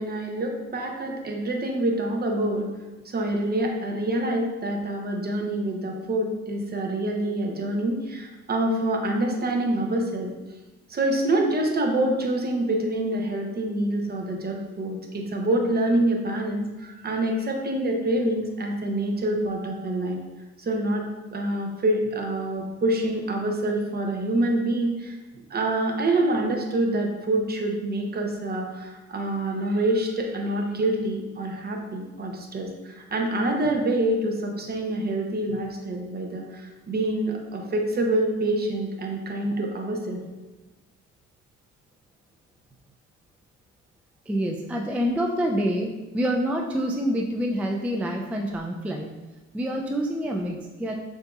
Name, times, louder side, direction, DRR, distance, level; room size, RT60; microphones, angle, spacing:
voice 1, 0.0-2.7 3.0-10.3 10.9-20.2 20.6-21.1 21.3-25.2 25.5-40.2, right 1 dB, 30° right, 2 dB, 0.8 m, -26 dB
voice 2, 44.3-49.2 49.5-50.9, equal, 5° right, 1 dB, 0.3 m, -27 dB
6.7 x 2.8 x 2.4 m, 1.2 s
cardioid pair, 90°, 30 cm